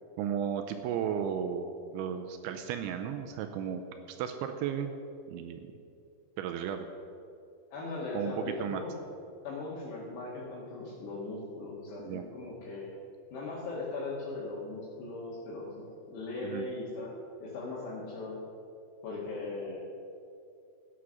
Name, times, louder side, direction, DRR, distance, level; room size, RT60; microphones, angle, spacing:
voice 1, 0.2-3.8 4.1-4.9 5.3-5.6 6.4-6.9 8.1-8.8 12.0-12.2 16.4-16.7, right 8 dB, 85° right, 6 dB, 2.8 m, -34 dB
voice 2, 7.7-8.9 9.4-12.9 13.3-15.7 16.1-17.1 17.4-18.4 19.0-19.8, left 3 dB, 65° left, -6 dB, 3.7 m, -38 dB
14.5 x 9.6 x 6.3 m, 2.5 s
omnidirectional pair, 5.6 m